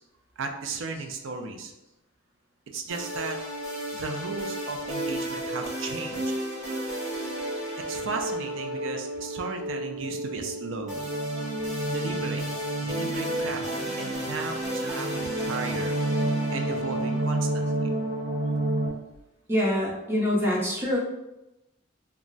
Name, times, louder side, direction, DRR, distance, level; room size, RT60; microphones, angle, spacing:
voice 1, 0.4-1.7 2.7-3.4 3.9-6.3 7.7-11.0 11.8-12.5 12.8-13.7 14.0-15.9 16.5-17.9, right 4 dB, 70° right, 4 dB, 0.4 m, -35 dB
sound 1, 2.9-18.9, right 1 dB, 35° right, 1.0 m, -30 dB
voice 2, 19.5-21.0, left 1 dB, 10° right, -4 dB, 0.6 m, -25 dB
2.3 x 2.0 x 3.8 m, 0.95 s
head